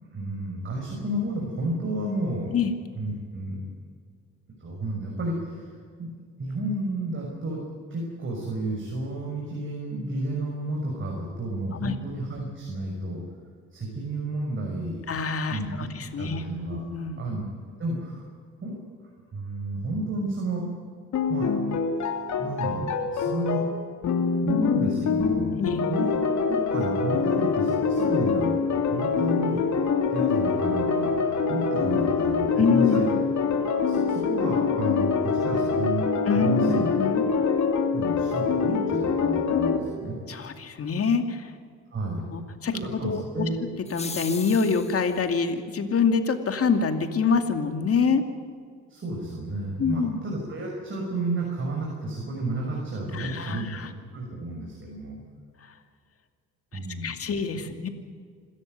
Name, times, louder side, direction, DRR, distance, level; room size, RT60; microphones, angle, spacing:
voice 1, 0.0-2.5 2.9-3.6 4.6-5.7 6.0-6.1 6.4-7.6 7.9-13.2 13.7-15.0 15.5-15.7 16.2-16.8 17.2-17.4 17.8-18.3 18.6-20.7 21.3-21.5 22.4-23.7 24.4-29.6 30.1-33.1 33.7-36.1 36.3-36.9 37.9-40.2 41.9-42.2 42.7-43.6 48.9-55.2 56.7-57.1 57.7-57.8, right 2 dB, 40° right, -1 dB, 6.3 m, -31 dB
voice 2, 15.1-16.4 16.9-17.1 25.6-25.8 32.6-33.2 36.3-37.2 40.3-41.5 42.3-43.5 43.9-48.2 49.8-50.2 53.1-53.9 56.7-57.9, left 5 dB, 50° left, 7 dB, 2.5 m, -25 dB
sound 1, 21.1-39.8, left 5 dB, 70° left, 2.8 m, -25 dB
Bowed string instrument, 27.6-35.4, left 2 dB, 75° right, 2.8 m, -41 dB
sound 2, 43.8-45.2, left 3 dB, 20° left, 2.0 m, -38 dB
26.5 x 13.5 x 9.5 m, 2.1 s
cardioid pair, 90°, 30 cm